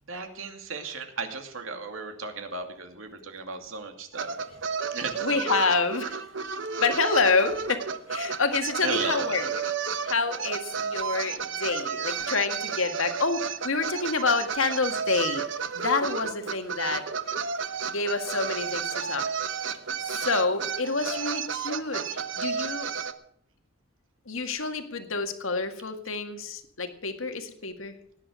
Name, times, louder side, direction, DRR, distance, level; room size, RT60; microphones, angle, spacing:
voice 1, 0.1-4.4 4.9-5.6 8.8-9.5 17.5-17.8 20.1-20.3, right 4 dB, 90° right, 5 dB, 2.5 m, -35 dB
sound 1, 4.1-23.1, right 6 dB, 65° right, 1.1 m, -32 dB
voice 2, 5.2-6.2 6.8-9.6 10.0-15.4 15.8-17.1 17.9-19.6 20.1-22.9 24.3-28.0, left 4 dB, 85° left, 7 dB, 1.9 m, -28 dB
18.0 x 10.0 x 6.3 m, 0.67 s
head